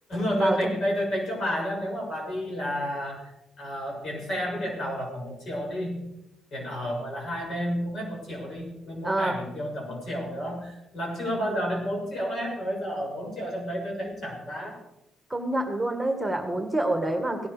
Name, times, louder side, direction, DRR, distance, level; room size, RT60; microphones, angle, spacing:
voice 1, 0.1-3.3 3.6-6.0 6.5-14.8, equal, 60° left, -1 dB, 6.8 m, -31 dB
voice 2, 9.0-9.4 15.3-17.5, right 1 dB, 10° right, 5 dB, 1.9 m, -27 dB
17.5 x 11.5 x 5.1 m, 0.89 s
cardioid pair, 90°, 0 cm